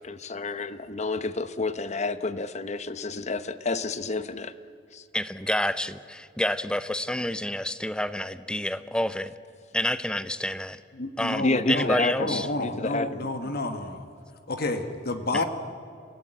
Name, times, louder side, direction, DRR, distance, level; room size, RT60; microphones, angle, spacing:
voice 1, 0.0-4.5 4.9-5.0 11.4-13.5, left 3 dB, 40° left, 13 dB, 0.9 m, -30 dB
voice 2, 5.1-9.3 9.7-10.8 11.2-12.5 15.3-15.4, left 1 dB, 5° left, 13 dB, 0.7 m, -28 dB
voice 3, 10.9-14.0 14.5-15.4, left 2 dB, 55° left, 7 dB, 1.6 m, -30 dB
27.5 x 16.5 x 9.0 m, 2.3 s
head